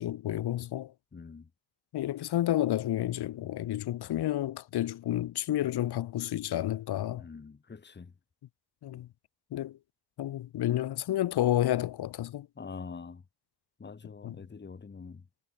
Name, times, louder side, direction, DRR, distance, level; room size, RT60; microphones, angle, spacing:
voice 1, 0.0-0.9 1.9-7.3 8.8-9.1 9.5-9.8 10.2-12.5 14.2-14.4, left 13 dB, 85° left, 2.2 m, -30 dB
voice 2, 1.1-1.5 7.2-8.1 8.9-9.0 12.6-13.2 13.8-15.2, left 5 dB, 30° left, 1.6 m, -45 dB
cardioid pair, 90°, 38 cm